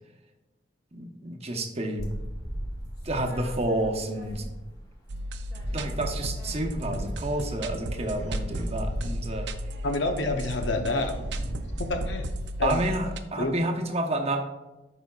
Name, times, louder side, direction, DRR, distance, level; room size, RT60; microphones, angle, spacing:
voice 1, 0.9-2.1 3.0-4.5 5.7-9.5 12.6-14.4, right 1 dB, 35° right, 2 dB, 0.9 m, -30 dB
sound 1, 2.0-4.8 5.1-12.9, equal, 20° left, 1.4 m, -36 dB
sound 2, 5.1-13.2, right 1 dB, 70° right, 0.5 m, -36 dB
voice 2, 9.8-11.1 11.8-12.3 12.6-12.8 13.4-13.5, left 2 dB, 80° left, 4 dB, 0.8 m, -27 dB
13.0 x 5.0 x 2.4 m, 1.1 s
head